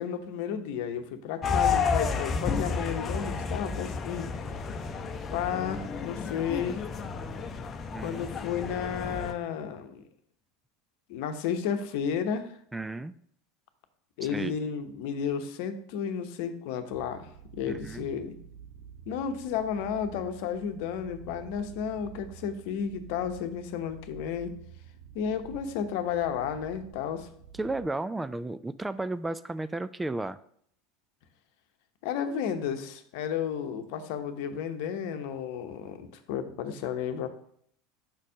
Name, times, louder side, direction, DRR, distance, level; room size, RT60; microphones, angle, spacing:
voice 1, 0.0-4.3 5.3-6.8 8.0-10.0 11.1-12.6 14.2-18.3 19.1-24.5 25.1-27.3 32.0-37.3, left 8 dB, 65° left, 8 dB, 0.8 m, -32 dB
sound 1, 1.4-9.3, left 5 dB, 35° left, 0.7 m, -31 dB
voice 2, 7.9-8.3 12.7-13.1 14.2-14.6 17.7-18.1 27.6-30.4, right 2 dB, 10° right, 14 dB, 0.3 m, -33 dB
sound 2, 16.9-27.9, right 8 dB, 75° right, 1.0 m, -49 dB
6.0 x 4.3 x 6.1 m, 0.66 s
hypercardioid pair, 80°, 0 cm